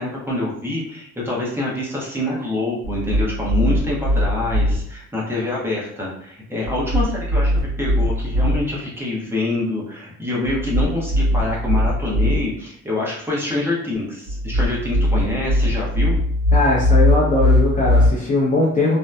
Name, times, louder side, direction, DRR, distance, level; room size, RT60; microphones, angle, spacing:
voice 1, 0.0-16.2, left 2 dB, 10° right, -5 dB, 0.9 m, -26 dB
sound 1, 2.8-4.8 6.6-8.6 10.5-12.4 14.3-18.1, left 1 dB, 50° right, 1.1 m, -20 dB
voice 2, 16.5-19.0, left 2 dB, 25° left, -6 dB, 0.7 m, -19 dB
2.7 x 2.2 x 2.2 m, 0.68 s
cardioid pair, 90°, 30 cm